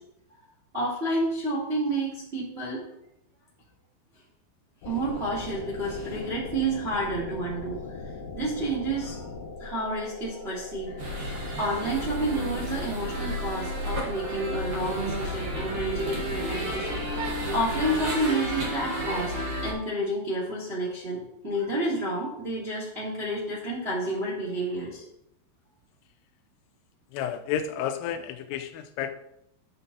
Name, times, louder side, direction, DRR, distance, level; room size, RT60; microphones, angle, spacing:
voice 1, 0.7-2.9 4.8-7.8 8.3-9.3 9.6-11.0 11.6-19.3 19.6-21.2 21.4-25.0, right 1 dB, 25° right, -4 dB, 1.5 m, -30 dB
sound 1, 4.8-17.7, left 4 dB, 65° left, 2.4 m, -40 dB
sound 2, 11.0-19.7, right 1 dB, 55° right, 1.5 m, -32 dB
voice 2, 27.1-29.1, left 9 dB, 90° left, 9 dB, 3.4 m, -31 dB
10.5 x 6.8 x 4.1 m, 0.77 s
omnidirectional pair, 5.7 m